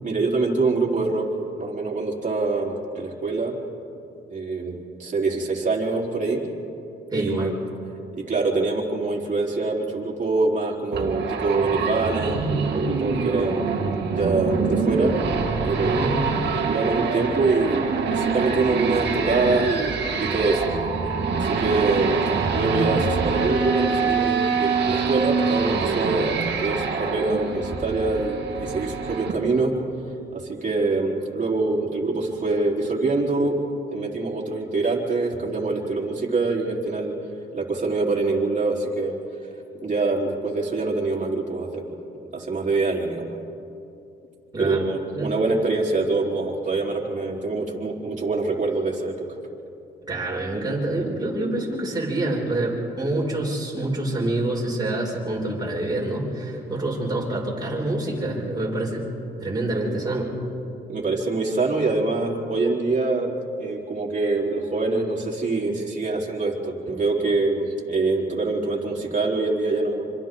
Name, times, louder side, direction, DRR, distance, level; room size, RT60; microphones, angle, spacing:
voice 1, 0.0-1.3 1.6-3.6 4.3-6.4 7.1-7.5 8.2-12.4 12.7-13.8 14.1-15.2 15.6-16.1 16.6-19.9 20.2-20.6 21.3-22.2 22.5-29.8 30.3-33.6 33.9-37.1 37.5-39.2 39.8-41.8 42.3-43.3 44.6-49.3 60.9-63.3 63.6-70.1, right 3 dB, 40° right, -2 dB, 4.1 m, -24 dB
voice 2, 7.1-7.6 15.8-16.3 44.5-44.9 45.1-45.3 50.1-59.1 59.4-60.3, right 1 dB, 20° right, -3 dB, 6.2 m, -26 dB
sound 1, 10.9-29.3, right 5 dB, 60° right, 2.6 m, -25 dB
26.5 x 26.0 x 3.9 m, 2.8 s
cardioid pair, 90°, 20 cm